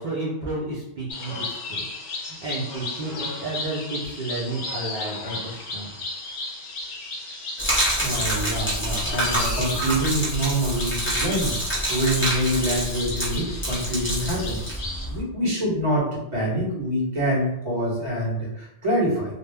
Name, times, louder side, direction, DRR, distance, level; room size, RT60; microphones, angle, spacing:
voice 1, 0.0-5.9, right 2 dB, 50° right, -6 dB, 0.7 m, -32 dB
sound 1, 1.1-15.1, left 2 dB, 80° left, 0.9 m, -34 dB
Gurgling / Liquid, 7.6-15.2, right 1 dB, 15° left, 0.7 m, -27 dB
voice 2, 8.0-11.6 11.9-14.7 15.1-19.3, equal, 30° right, -7 dB, 1.1 m, -25 dB
2.6 x 2.1 x 3.3 m, 0.81 s
omnidirectional pair, 1.1 m